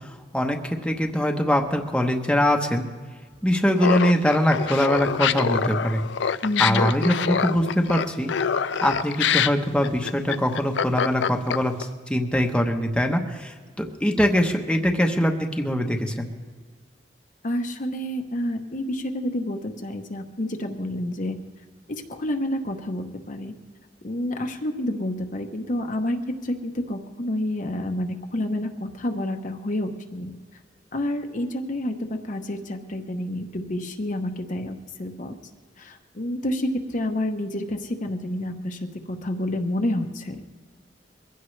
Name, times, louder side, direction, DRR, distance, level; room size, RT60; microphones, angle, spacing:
voice 1, 0.3-2.9 3.4-6.0 6.6-8.3 8.8-11.7 12.1-16.3, equal, 5° left, 2 dB, 1.0 m, -22 dB
Laughter, 3.8-11.8, left 7 dB, 80° left, 0.5 m, -25 dB
voice 2, 6.4-6.9 17.4-21.4 21.9-23.5 24.0-30.3 30.9-35.3 35.8-40.5, left 1 dB, 45° left, 5 dB, 1.0 m, -29 dB
22.0 x 16.0 x 3.3 m, 1.5 s
head